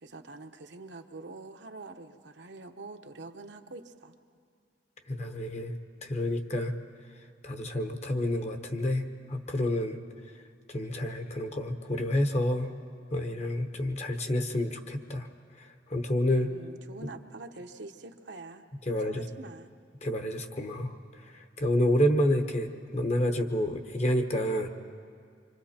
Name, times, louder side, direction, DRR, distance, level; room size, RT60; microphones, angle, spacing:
voice 1, 0.0-4.1 16.4-18.6 19.0-19.7, right 3 dB, 75° right, 5 dB, 1.0 m, -45 dB
voice 2, 5.1-6.7 7.4-10.0 10.7-12.7 13.1-15.3 15.6-16.5 18.9-19.2 20.0-24.7, left 1 dB, 40° left, 6 dB, 1.1 m, -29 dB
26.0 x 25.5 x 4.3 m, 2.2 s
head